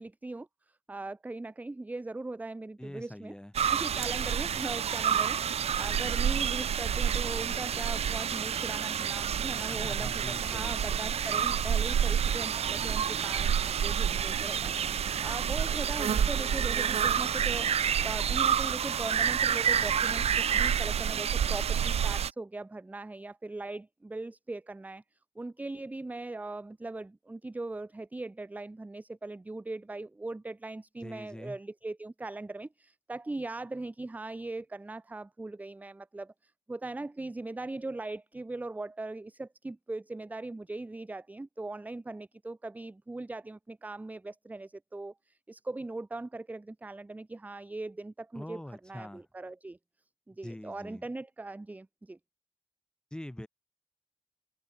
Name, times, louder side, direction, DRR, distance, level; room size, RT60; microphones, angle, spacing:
voice 1, 0.0-3.3 3.7-17.7 18.0-25.0 25.4-49.8 50.3-52.2, right 2 dB, 15° right, 0.5 m, -40 dB
voice 2, 2.8-3.5 9.7-10.8 31.0-31.6 48.3-49.2 50.4-51.0 53.1-53.5, left 1 dB, 5° left, 2.0 m, -43 dB
sound 1, 3.5-22.3, right 8 dB, 70° right, 0.4 m, -28 dB
wide cardioid pair, 175°, 11 cm